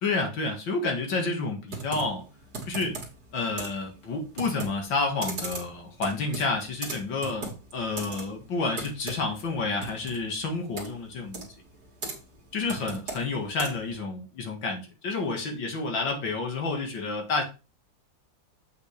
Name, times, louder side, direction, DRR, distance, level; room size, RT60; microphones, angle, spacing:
voice 1, 0.0-2.2 2.7-3.0 3.3-11.5 12.5-17.4, left 3 dB, 85° left, 2.4 m, -30 dB
Computer keyboard, 1.7-14.0, right 3 dB, 55° right, 2.4 m, -39 dB
7.8 x 5.6 x 3.3 m
omnidirectional pair, 2.0 m